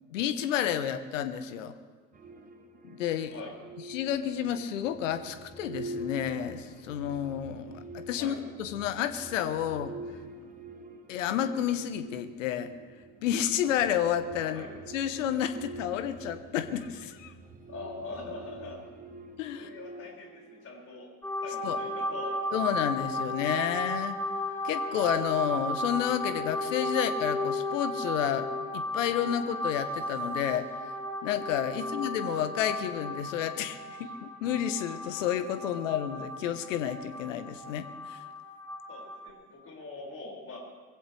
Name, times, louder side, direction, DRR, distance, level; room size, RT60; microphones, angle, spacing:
voice 1, 0.1-1.7 2.8-3.3 3.9-9.9 11.1-12.7 13.2-17.3 19.4-19.7 21.6-21.8 22.5-24.1 24.6-28.5 28.7-30.7 31.2-38.2, left 10 dB, 60° left, 11 dB, 1.4 m, -30 dB
sound 1, 2.1-21.0, right 2 dB, 20° right, 1.6 m, -46 dB
voice 2, 17.7-18.8 19.5-21.1 21.4-22.4 26.9-27.0 31.8-31.9 38.9-40.6, left 3 dB, 30° left, -2 dB, 6.1 m, -43 dB
sound 2, 21.2-39.3, left 1 dB, 5° left, 2.4 m, -35 dB
23.5 x 16.0 x 3.4 m, 1.4 s
figure-of-eight pair, 75°, 43 cm